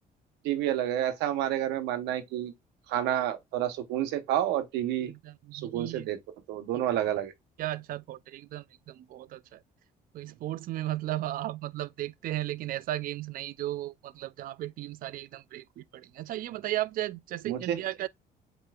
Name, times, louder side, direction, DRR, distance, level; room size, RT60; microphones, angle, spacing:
voice 1, 0.4-2.5 2.9-5.1 5.5-6.2 6.5-7.3 17.5-17.8, right 11 dB, 90° right, 0.8 m, -29 dB
voice 2, 5.1-6.1 7.6-9.6 10.1-18.1, right 14 dB, 55° right, 0.4 m, -35 dB
7.5 x 3.0 x 2.3 m
cardioid pair, 110°, 17 cm